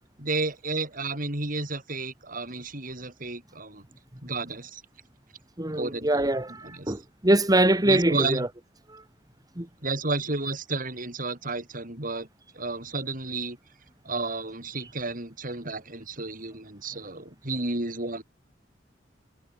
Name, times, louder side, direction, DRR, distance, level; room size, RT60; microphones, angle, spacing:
voice 1, 0.2-3.8 4.2-4.8 5.8-6.3 6.6-6.9 7.8-8.5 9.8-12.3 12.6-13.6 14.0-18.2, right 3 dB, 50° right, 5.8 m, -32 dB
voice 2, 5.6-8.5 8.9-9.0 9.6-9.7, right 1 dB, 20° right, 2.5 m, -23 dB
head